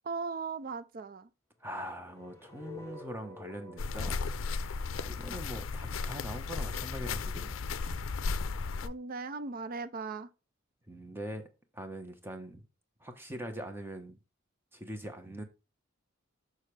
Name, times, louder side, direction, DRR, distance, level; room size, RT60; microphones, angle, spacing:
voice 1, 0.0-1.3 8.8-10.3, right 4 dB, 45° right, 0.5 m, -38 dB
voice 2, 1.6-7.6 10.9-11.5 11.7-12.6 13.0-14.2 14.7-15.4, right 1 dB, 10° right, 1.0 m, -42 dB
sound 1, 1.8-5.9, left 3 dB, 15° left, 0.9 m, -50 dB
sound 2, 3.8-8.9, left 4 dB, 75° left, 0.5 m, -35 dB
6.5 x 6.2 x 3.3 m
head